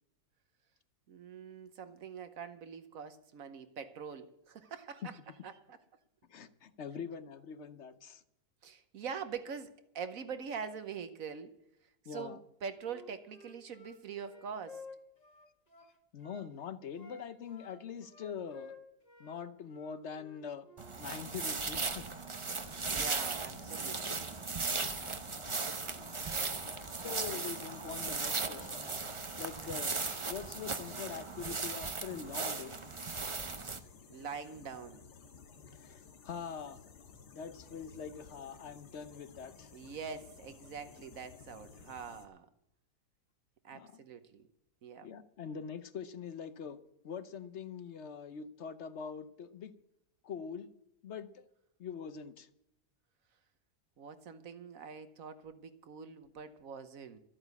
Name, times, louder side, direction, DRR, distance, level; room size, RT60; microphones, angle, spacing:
voice 1, 1.1-5.2 5.4-5.8 8.6-11.5 12.0-14.9 22.6-24.3 27.3-27.5 29.6-29.8 34.1-35.0 39.7-42.5 43.6-44.5 44.8-45.1 54.0-57.2, right 6 dB, 60° right, 10 dB, 1.2 m, -44 dB
voice 2, 6.3-8.2 12.1-12.4 16.1-18.7 19.2-20.7 21.0-22.1 24.8-25.2 27.0-29.0 29.4-29.9 30.3-32.8 35.7-36.8 37.3-39.7 43.7-43.9 45.0-46.8 47.0-49.7 50.2-50.7 51.0-51.5 51.8-52.5, left 7 dB, 55° left, 12 dB, 0.9 m, -43 dB
Wind instrument woodwind instrument, 12.8-16.5 16.9-19.4 19.6-21.0, left 3 dB, 25° left, 2.0 m, -53 dB
sound 1, 20.8-33.8, right 4 dB, 35° right, 0.5 m, -37 dB
sound 2, 22.6-42.3, left 5 dB, 90° left, 1.9 m, -56 dB
13.0 x 8.9 x 8.2 m, 0.81 s
omnidirectional pair, 1.7 m